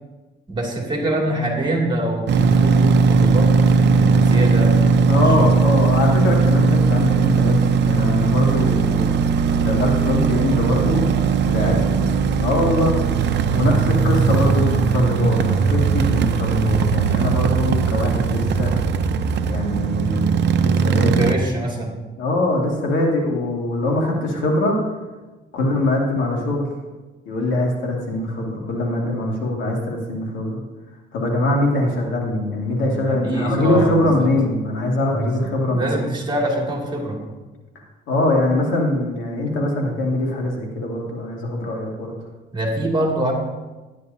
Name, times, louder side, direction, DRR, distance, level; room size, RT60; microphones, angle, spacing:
voice 1, 0.5-5.5 11.5-12.1 13.5-13.7 21.2-21.9 25.6-25.8 32.8-34.3 35.1-37.2 42.5-43.3, right 1 dB, 25° right, -1 dB, 2.6 m, -25 dB
sound 1, 2.3-21.3, right 5 dB, 65° right, 0.7 m, -18 dB
voice 2, 5.1-9.2 9.6-11.1 11.4-11.7 12.4-12.9 13.5-18.7 19.5-21.2 22.2-24.8 25.5-26.7 27.2-30.6 31.1-35.9 38.1-42.1, left 1 dB, 80° left, -1 dB, 2.4 m, -22 dB
12.5 x 9.9 x 2.8 m, 1.2 s
cardioid pair, 90°, 20 cm